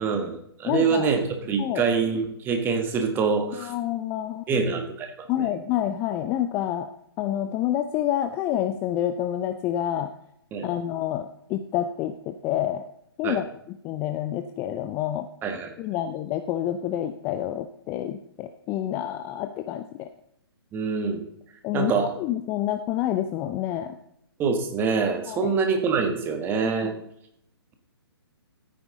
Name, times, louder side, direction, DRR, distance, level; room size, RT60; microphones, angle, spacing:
voice 1, 0.0-3.7 4.5-5.1 5.4-5.5 10.5-10.7 13.2-13.4 15.4-15.7 20.7-21.2 21.7-22.1 24.4-26.9, right 5 dB, 15° right, 5 dB, 1.5 m, -25 dB
voice 2, 0.6-1.1 1.6-1.8 3.5-4.4 5.3-6.9 7.2-10.1 10.6-12.8 13.2-13.4 13.8-15.3 15.8-20.1 21.6-24.0 25.3-25.5 26.6-27.0, left 11 dB, 15° left, 9 dB, 0.5 m, -28 dB
14.5 x 9.1 x 3.8 m, 0.74 s
figure-of-eight pair, 130°, 13 cm